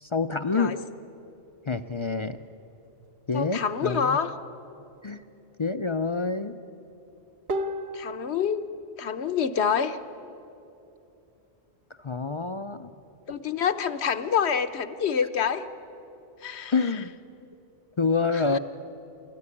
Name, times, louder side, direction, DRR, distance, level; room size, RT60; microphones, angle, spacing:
voice 1, 0.0-0.8 1.7-2.4 3.3-4.2 5.0-5.2 5.6-6.5 12.0-12.9 16.7-17.1 18.0-18.6, left 4 dB, 35° left, 9 dB, 0.5 m, -27 dB
voice 2, 3.3-4.3 7.9-8.7 9.0-10.0 13.3-15.7 16.4-16.7 18.3-18.6, left 7 dB, 75° left, 10 dB, 1.2 m, -27 dB
sound 1, 3.9-4.5 7.5-8.4, right 1 dB, 65° right, 1.3 m, -33 dB
29.5 x 13.5 x 9.9 m, 2.8 s
omnidirectional pair, 1.1 m